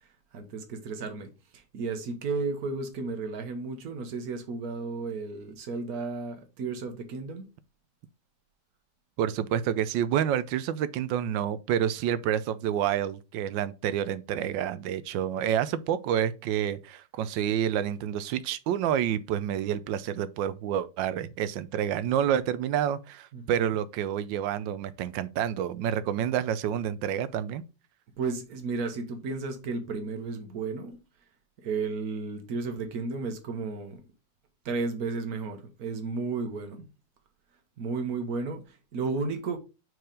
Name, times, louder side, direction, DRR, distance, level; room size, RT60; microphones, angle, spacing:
voice 1, 0.3-7.5 23.3-23.4 28.2-31.0 31.6-34.0 34.6-36.9 37.8-39.6, right 4 dB, 55° right, 1.5 m, -33 dB
voice 2, 9.2-27.6, right 10 dB, 80° right, 1.3 m, -28 dB
4.7 x 4.6 x 5.1 m
omnidirectional pair, 2.1 m